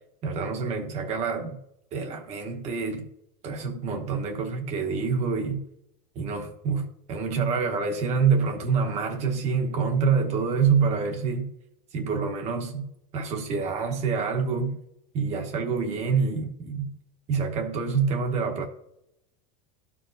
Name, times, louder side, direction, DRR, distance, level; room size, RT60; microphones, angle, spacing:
voice 1, 0.2-1.6 1.9-3.1 3.4-5.7 6.1-11.5 11.9-14.8 15.1-17.0 17.3-18.7, right 5 dB, 35° right, 1.0 m, -27 dB
13.5 x 4.7 x 2.6 m
cardioid pair, 170°, 20 cm